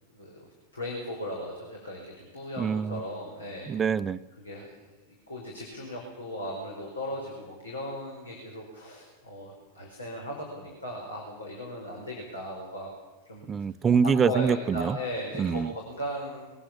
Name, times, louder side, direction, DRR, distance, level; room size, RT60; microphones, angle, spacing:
voice 1, 0.1-3.7 4.4-12.9 13.2-13.5 14.2-16.5, equal, 75° left, -1 dB, 4.8 m, -37 dB
voice 2, 2.6-3.0 3.7-4.2 13.5-15.0 15.4-15.7, right 6 dB, 20° right, 14 dB, 0.7 m, -25 dB
22.0 x 19.0 x 7.3 m, 1.2 s
figure-of-eight pair, 90°, 0 cm